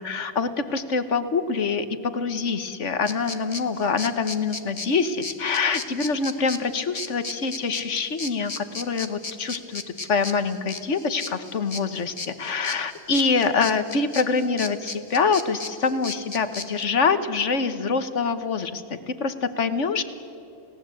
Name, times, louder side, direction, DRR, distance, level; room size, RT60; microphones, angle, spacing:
voice 1, 0.0-9.8 10.1-20.0, left 4 dB, 70° left, 11 dB, 1.7 m, -25 dB
sound 1, 3.1-16.8, left 4 dB, 30° left, 1.2 m, -36 dB
29.5 x 18.0 x 8.5 m, 2.6 s
omnidirectional pair, 1.3 m